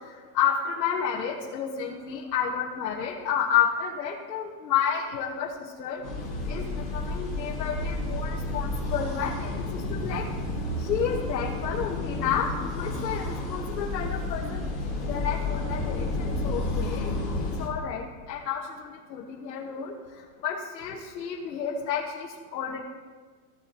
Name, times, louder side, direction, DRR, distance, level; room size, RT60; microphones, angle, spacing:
voice 1, 0.3-6.0 6.5-6.6 6.9-9.6 9.9-10.2 10.9-14.6 15.0-16.1 16.4-17.1 17.6-18.0 18.3-18.7 19.1-19.9 20.4-22.8, left 8 dB, 80° left, -3 dB, 1.4 m, -30 dB
sound 1, 6.0-17.7, left 2 dB, 5° left, 0.3 m, -31 dB
15.0 x 7.1 x 3.0 m, 1.5 s
supercardioid pair, 160°, 49 cm